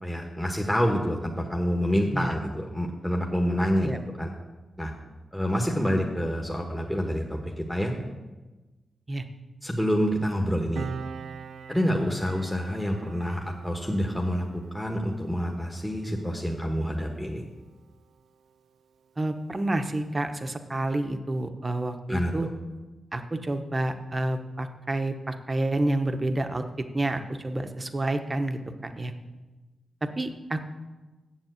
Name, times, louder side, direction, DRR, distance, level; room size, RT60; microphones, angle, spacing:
voice 1, 0.0-3.9 4.2-4.3 4.8-4.9 5.3-7.9 9.6-10.9 11.7-14.4 14.7-17.4 22.1-22.3, equal, 5° left, 0 dB, 1.3 m, -27 dB
Piano, 10.8-17.8 18.1-18.3, right 6 dB, 80° right, 0.4 m, -43 dB
voice 2, 19.2-22.5 23.1-29.1 30.0-30.6, right 2 dB, 30° right, 7 dB, 0.9 m, -29 dB
7.3 x 7.2 x 7.9 m, 1.2 s
cardioid pair, 65°, 0 cm